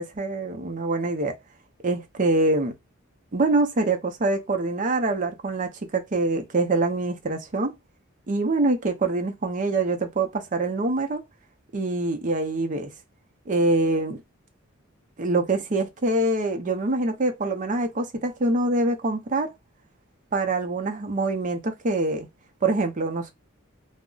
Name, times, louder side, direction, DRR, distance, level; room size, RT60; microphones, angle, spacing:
voice 1, 0.0-1.4 1.8-2.8 3.3-7.7 8.3-11.2 11.7-12.9 13.5-14.2 15.2-19.5 20.3-22.3 22.6-23.3, right 2 dB, 40° right, 0.5 m, -25 dB
2.3 x 2.0 x 3.7 m
head